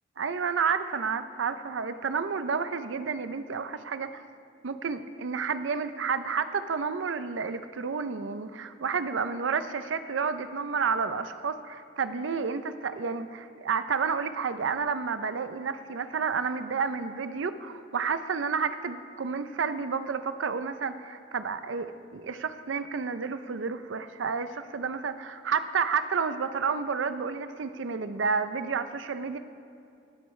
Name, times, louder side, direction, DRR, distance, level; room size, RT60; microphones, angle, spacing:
voice 1, 0.2-4.2 4.6-29.4, right 5 dB, 85° right, 11 dB, 0.5 m, -30 dB
18.5 x 12.5 x 3.2 m, 2.6 s
head